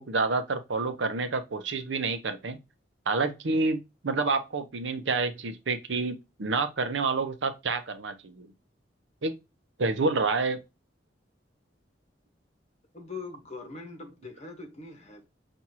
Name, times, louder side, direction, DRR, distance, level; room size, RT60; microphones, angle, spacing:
voice 1, 0.0-2.6 3.1-8.5 9.2-9.3 9.8-10.6, right 3 dB, 80° right, 0.7 m, -28 dB
voice 2, 12.9-15.2, left 3 dB, 35° left, 1.3 m, -42 dB
5.9 x 2.6 x 2.8 m
head